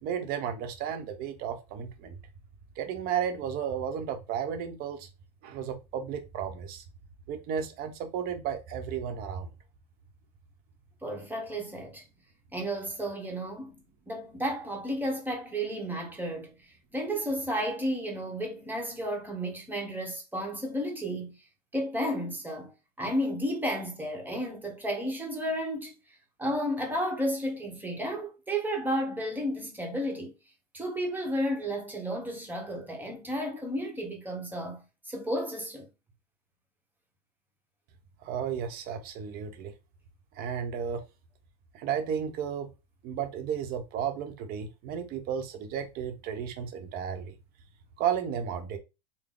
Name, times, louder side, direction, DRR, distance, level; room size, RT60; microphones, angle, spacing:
voice 1, 0.0-2.2 2.8-5.1 5.4-6.8 7.3-9.5 38.2-39.7 40.3-41.0 41.7-42.7 43.0-47.3 48.0-48.8, right 8 dB, 45° right, 0.9 m, -33 dB
voice 2, 11.0-12.0 12.5-13.8 14.1-16.5 16.9-21.4 21.7-22.7 23.0-25.9 26.4-30.3 30.7-35.9, equal, 10° right, 1.1 m, -32 dB
3.8 x 2.2 x 3.7 m
supercardioid pair, 120°, 21 cm